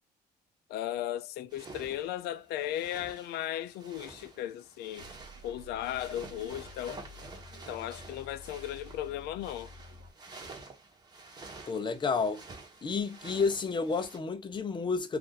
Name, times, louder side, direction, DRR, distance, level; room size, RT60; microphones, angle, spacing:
voice 1, 0.7-5.1 5.4-7.0 7.7-9.7, left 12 dB, 75° left, 0.4 m, -36 dB
sound 1, 1.5-14.2, right 3 dB, 25° right, 1.1 m, -50 dB
sound 2, 5.0-10.1, left 1 dB, 60° right, 1.2 m, -51 dB
voice 2, 11.7-12.4 12.8-15.2, left 4 dB, 30° left, 0.6 m, -30 dB
2.6 x 2.5 x 3.9 m
cardioid pair, 110°, 17 cm